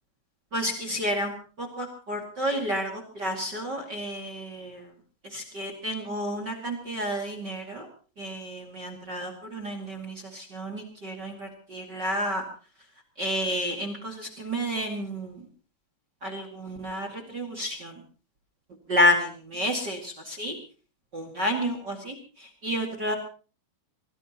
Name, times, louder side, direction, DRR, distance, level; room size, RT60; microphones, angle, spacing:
voice 1, 0.5-1.3 1.6-4.8 5.3-7.9 8.2-12.4 13.2-15.4 16.2-17.9 18.9-20.5 21.1-23.1, equal, 40° right, 5 dB, 1.6 m, -30 dB
25.5 x 19.0 x 3.0 m, 0.38 s
omnidirectional pair, 5.5 m